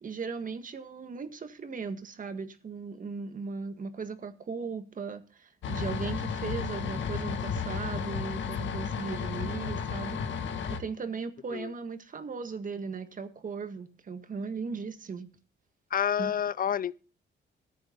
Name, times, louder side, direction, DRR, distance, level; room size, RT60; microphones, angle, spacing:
voice 1, 0.0-15.3 16.2-16.3, right 5 dB, 40° right, 1.8 m, -37 dB
sound 1, 5.6-10.8, left 6 dB, 70° left, 1.8 m, -33 dB
voice 2, 15.9-17.0, left 9 dB, 45° left, 0.5 m, -29 dB
14.5 x 9.4 x 4.0 m
cardioid pair, 90°, 20 cm